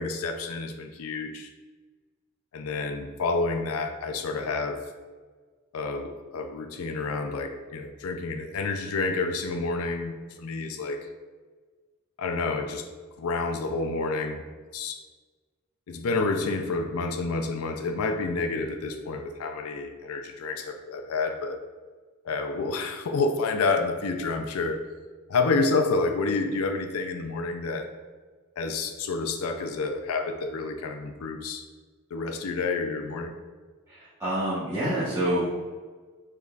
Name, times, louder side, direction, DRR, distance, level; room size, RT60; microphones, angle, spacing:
voice 1, 0.0-1.5 2.5-4.8 5.7-11.0 12.2-12.9 13.2-14.5 14.7-15.0 15.9-21.6 22.2-24.8 25.3-27.9 28.6-31.6 32.1-33.3, left 3 dB, 75° left, 6 dB, 0.4 m, -29 dB
voice 2, 33.9-35.5, right 1 dB, 15° right, -13 dB, 1.1 m, -27 dB
5.0 x 3.9 x 2.4 m, 1.4 s
head